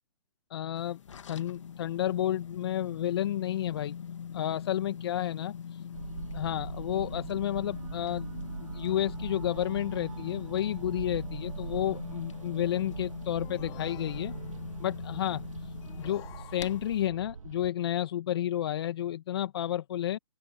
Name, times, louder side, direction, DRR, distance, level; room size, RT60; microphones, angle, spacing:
voice 1, 0.5-1.0 1.3-3.9 4.3-5.6 6.3-8.3 8.7-14.3 14.8-15.4 16.0-20.2, left 12 dB, 50° left, 1.7 m, -31 dB
sound 1, 0.8-17.1, left 8 dB, 70° left, 2.0 m, -42 dB
sound 2, 5.9-17.7, right 5 dB, 85° right, 1.5 m, -41 dB
sound 3, 13.4-14.7 15.8-17.1, left 17 dB, 20° left, 4.2 m, -51 dB
open air
hypercardioid pair, 145°, 17 cm